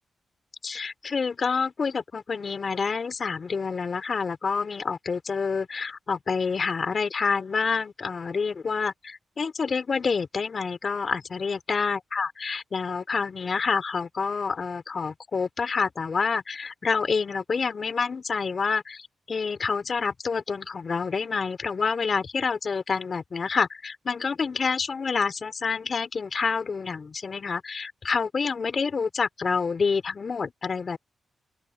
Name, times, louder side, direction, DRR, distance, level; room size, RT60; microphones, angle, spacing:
voice 1, 0.6-31.0, left 5 dB, 55° left, 3.6 m, -28 dB
open air
cardioid pair, 60°, 0 cm